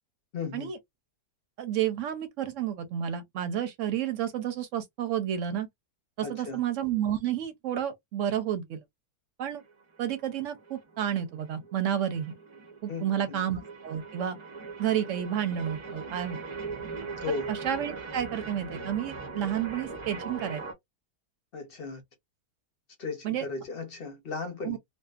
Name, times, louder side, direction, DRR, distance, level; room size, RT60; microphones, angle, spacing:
voice 1, 0.3-0.7 6.2-6.6 12.9-13.4 17.2-17.5 21.5-22.0 23.0-24.8, left 4 dB, 50° left, 0.7 m, -36 dB
voice 2, 1.6-5.7 6.2-8.8 9.4-9.6 10.0-12.4 12.8-14.4 14.8-16.4 17.5-20.6 23.2-23.5 24.6-24.8, right 10 dB, 65° right, 0.8 m, -31 dB
sound 1, 9.4-20.7, right 4 dB, 45° right, 0.4 m, -41 dB
2.6 x 2.1 x 2.3 m
omnidirectional pair, 1.6 m